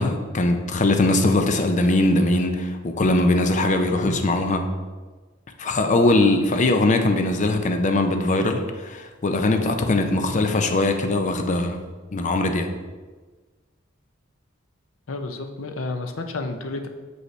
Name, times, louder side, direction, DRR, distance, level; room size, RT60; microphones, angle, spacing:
voice 1, 0.0-4.6 5.6-11.8 12.1-12.7, left 2 dB, 40° left, 5 dB, 0.5 m, -21 dB
voice 2, 15.1-16.9, left 3 dB, 80° left, 6 dB, 0.6 m, -31 dB
6.4 x 5.2 x 3.2 m, 1.3 s
head